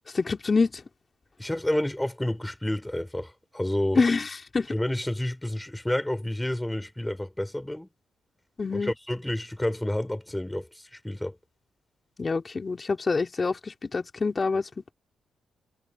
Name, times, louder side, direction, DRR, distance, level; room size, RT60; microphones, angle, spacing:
voice 1, 0.1-0.7 3.9-4.3 4.5-4.7 8.6-8.9 12.2-14.9, left 4 dB, 30° left, 4.6 m, -26 dB
voice 2, 1.4-4.0 4.7-7.9 8.7-11.4, left 1 dB, 5° left, 4.5 m, -29 dB
cardioid pair, 95°, 0 cm